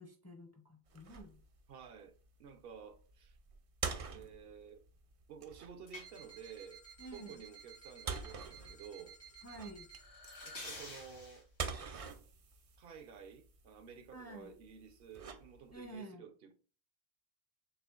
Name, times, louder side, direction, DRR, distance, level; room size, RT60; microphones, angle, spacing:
voice 1, 0.0-1.4 7.0-7.4 9.4-9.9 14.1-14.6 15.7-16.2, right 1 dB, 20° left, 0.4 m, -50 dB
sound 1, 0.9-16.0, right 5 dB, 50° right, 0.4 m, -47 dB
voice 2, 1.7-2.1 2.4-3.4 4.1-4.8 5.3-6.8 7.1-9.2 10.4-11.4 12.8-16.5, right 7 dB, 70° right, 0.8 m, -52 dB
sound 2, 5.9-11.4, equal, 90° left, 2.3 m, -52 dB
6.6 x 2.4 x 2.3 m
omnidirectional pair, 1.1 m